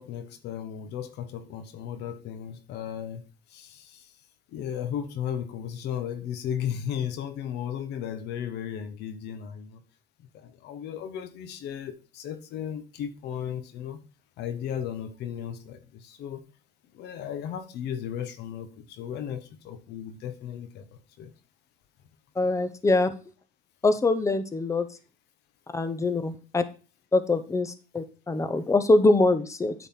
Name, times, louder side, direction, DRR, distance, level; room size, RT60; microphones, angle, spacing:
voice 1, 0.0-3.2 3.5-4.1 4.5-9.8 10.3-14.0 14.4-16.4 16.9-20.9 21.2-21.3, left 9 dB, 80° left, 10 dB, 1.1 m, -35 dB
voice 2, 22.4-23.1 23.8-24.9 25.7-26.6 27.1-29.7, left 2 dB, 15° left, 11 dB, 0.9 m, -23 dB
9.1 x 4.2 x 5.7 m, 0.35 s
cardioid pair, 110°, 17 cm